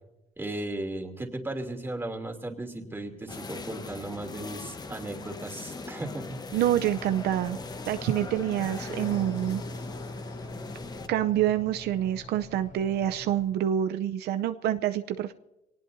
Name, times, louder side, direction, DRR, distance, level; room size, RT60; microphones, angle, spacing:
voice 1, 0.4-6.6, right 1 dB, 15° right, 3 dB, 2.9 m, -36 dB
sound 1, 3.3-11.1, left 3 dB, 25° left, 1.1 m, -40 dB
sound 2, 6.5-13.4, left 2 dB, 50° left, 4.5 m, -42 dB
voice 2, 6.5-7.6 7.9-9.6 11.1-15.3, right 11 dB, 75° right, 9 dB, 0.7 m, -27 dB
24.5 x 19.0 x 2.7 m, 0.97 s
cardioid pair, 110°, 17 cm